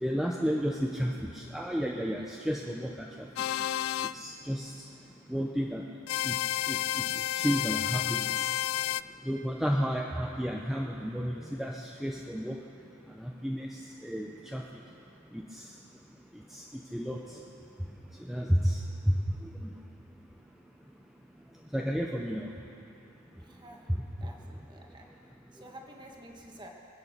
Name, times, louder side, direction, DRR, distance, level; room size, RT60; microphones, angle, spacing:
voice 1, 0.0-3.3 4.1-4.9 5.3-5.8 6.2-7.0 7.4-8.5 9.3-12.6 13.2-14.6 15.3-15.7 16.5-16.6 16.9-17.4 18.3-18.8 19.1-19.7 21.7-22.5 23.9-24.0, equal, ahead, -1 dB, 0.6 m, -32 dB
sound 1, 3.4-4.1 6.1-9.0, left 12 dB, 75° left, 0.3 m, -30 dB
voice 2, 23.4-23.9 24.2-25.1 25.5-26.7, right 1 dB, 20° right, 0 dB, 1.6 m, -50 dB
25.0 x 8.6 x 6.7 m, 2.9 s
head